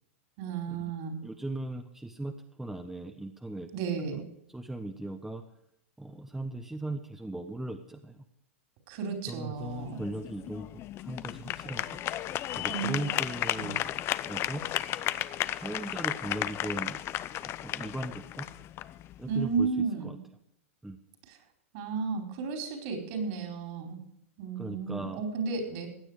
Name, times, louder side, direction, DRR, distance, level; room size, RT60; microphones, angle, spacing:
voice 1, 0.4-1.2 3.7-4.3 8.9-10.0 12.7-13.0 13.6-13.7 19.3-20.2 21.7-24.0 24.4-25.9, right 5 dB, 55° right, 5 dB, 4.5 m, -33 dB
voice 2, 1.2-2.3 2.6-3.7 4.1-4.2 4.5-5.4 6.0-8.2 9.3-10.7 11.0-12.0 12.6-14.6 14.9-15.1 15.5-17.0 17.4-18.5 19.2-20.2 20.8-21.0 24.6-25.2, right 1 dB, 5° right, 6 dB, 1.1 m, -38 dB
sound 1, 9.6-19.7, left 13 dB, 35° left, 0.6 m, -34 dB
16.5 x 9.9 x 5.0 m, 0.74 s
hypercardioid pair, 110°, 7 cm